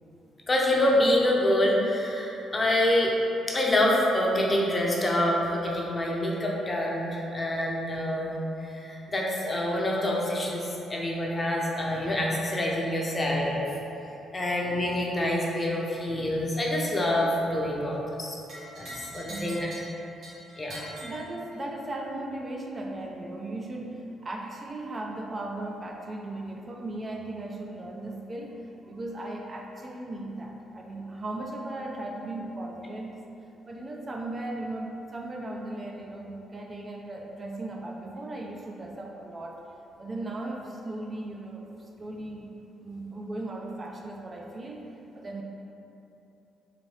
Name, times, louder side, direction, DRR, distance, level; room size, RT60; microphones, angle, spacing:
voice 1, 0.5-3.1 3.5-8.3 8.8-13.7 14.3-18.4 18.8-19.6 20.6-20.8, left 1 dB, 30° left, -2 dB, 0.6 m, -26 dB
sound 1, 18.5-21.9, equal, 65° right, 1.4 m, -43 dB
voice 2, 18.9-19.8 20.7-33.2 33.7-39.6 40.0-41.7 42.0-42.5 42.8-45.4, right 2 dB, 35° right, 0 dB, 0.4 m, -37 dB
4.0 x 2.6 x 3.2 m, 2.9 s
cardioid pair, 90°, 0 cm